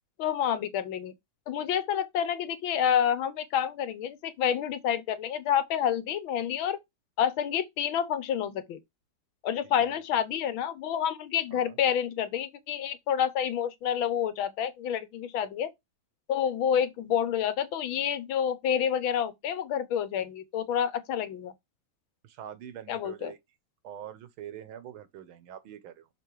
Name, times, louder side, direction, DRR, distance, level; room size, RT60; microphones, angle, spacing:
voice 1, 0.2-1.1 1.5-6.8 7.2-8.8 9.4-15.7 16.3-21.5 22.9-23.3, left 9 dB, 80° left, 1.7 m, -28 dB
voice 2, 9.6-10.0 11.5-11.8 22.2-23.4 23.8-26.1, right 10 dB, 85° right, 1.8 m, -44 dB
6.3 x 4.2 x 4.6 m
omnidirectional pair, 2.2 m